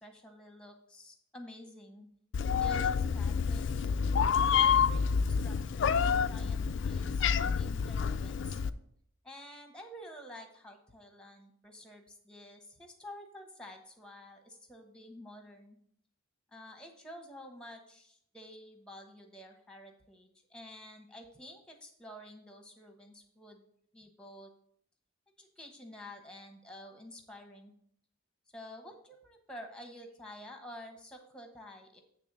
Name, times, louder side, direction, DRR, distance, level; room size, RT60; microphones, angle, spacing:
voice 1, 0.0-2.1 2.6-3.9 4.5-8.6 9.2-15.8 16.5-23.7 23.9-24.5 25.4-27.7 28.5-32.0, left 1 dB, 5° left, 4 dB, 1.0 m, -50 dB
Meow, 2.3-8.7, left 6 dB, 60° left, 0.3 m, -28 dB
8.6 x 3.5 x 6.7 m, 0.69 s
head